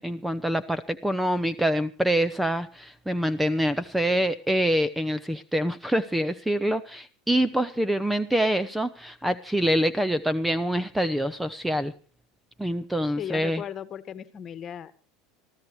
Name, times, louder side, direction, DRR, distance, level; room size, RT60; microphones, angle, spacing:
voice 1, 0.0-11.9 12.6-13.6, equal, 5° right, 17 dB, 0.8 m, -25 dB
voice 2, 13.2-14.9, left 9 dB, 35° left, 13 dB, 1.6 m, -36 dB
26.0 x 14.0 x 3.2 m, 0.33 s
supercardioid pair, 105°, 0 cm